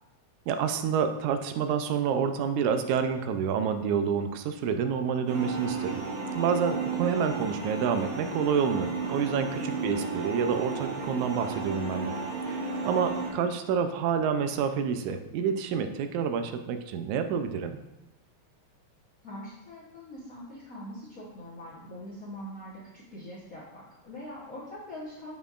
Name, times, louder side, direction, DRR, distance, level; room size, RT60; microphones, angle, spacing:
voice 1, 0.5-6.0 6.3-12.2 12.5-17.8, right 7 dB, 85° right, 8 dB, 2.0 m, -28 dB
sound 1, 5.3-13.3, right 4 dB, 65° right, 2.0 m, -33 dB
voice 2, 19.2-25.4, left 1 dB, 75° left, -7 dB, 0.7 m, -43 dB
7.4 x 5.7 x 2.4 m, 0.98 s
omnidirectional pair, 3.3 m